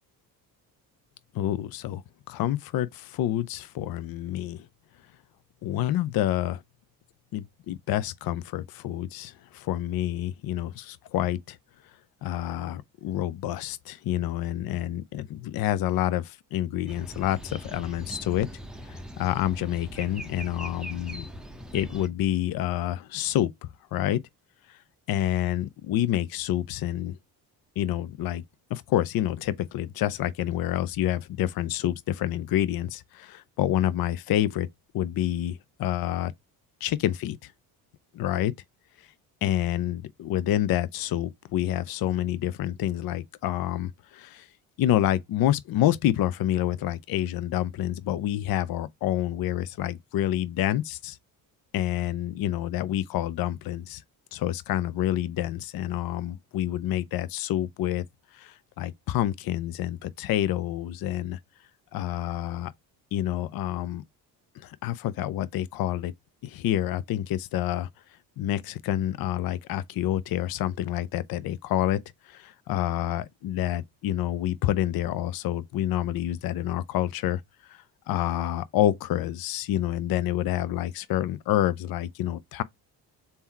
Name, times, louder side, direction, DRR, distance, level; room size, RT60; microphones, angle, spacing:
voice 1, 1.3-2.0 2.3-4.7 5.6-6.6 7.3-11.6 12.2-18.5 18.9-21.2 21.7-23.5 23.9-24.2 24.7-24.8 25.1-27.2 27.8-28.4 28.7-34.7 34.9-36.3 36.8-37.5 38.1-38.5 39.4-44.5 44.8-51.2 51.7-54.0 54.3-58.0 58.3-61.4 61.9-62.7 63.1-64.0 64.6-66.1 66.4-67.9 68.4-72.0 72.2-77.4 77.7-82.6, left 12 dB, 55° left, 0.5 m, -28 dB
sound 1, 16.9-22.1, equal, ahead, 0.8 m, -40 dB
3.5 x 2.8 x 4.4 m
supercardioid pair, 70°, 42 cm